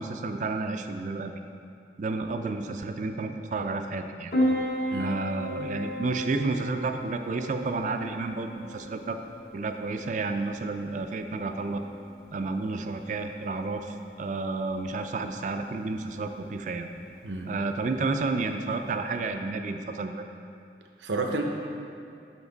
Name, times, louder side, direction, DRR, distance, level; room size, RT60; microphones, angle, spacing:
voice 1, 0.0-1.3 2.0-4.3 5.0-9.2 9.5-11.8 12.3-16.9 17.5-20.2, right 3 dB, 45° right, 6 dB, 0.3 m, -31 dB
Piano, 4.3-19.3, equal, 55° left, 1.1 m, -36 dB
voice 2, 21.0-21.4, right 2 dB, 85° right, 2 dB, 0.7 m, -30 dB
7.1 x 6.0 x 3.9 m, 2.5 s
head